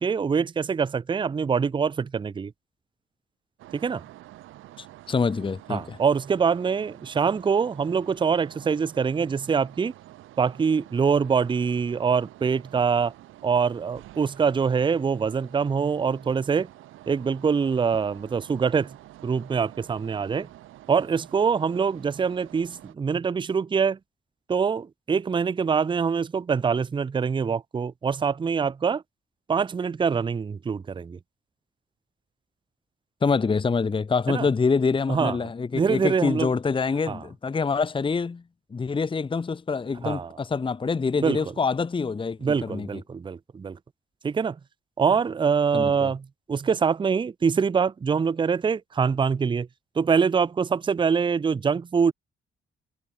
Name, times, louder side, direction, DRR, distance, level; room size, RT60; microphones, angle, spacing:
voice 1, 0.0-2.5 3.7-4.0 5.7-9.9 10.4-13.1 13.4-16.7 17.1-18.9 19.2-20.5 20.9-24.0 24.5-29.0 29.5-31.2 34.3-34.5 35.1-35.4 35.7-36.5 37.1-37.2 40.0-40.3 41.2-41.4 42.4-43.8 44.2-44.6 45.0-49.7 50.0-52.1, right 6 dB, 25° right, 0.5 m, -24 dB
Industrial hall ambience, 3.6-22.9, right 15 dB, 85° right, 1.6 m, -48 dB
voice 2, 4.8-6.0 33.2-38.4 38.7-43.0 45.7-46.1, left 5 dB, 25° left, 1.0 m, -26 dB
cardioid pair, 90°, 20 cm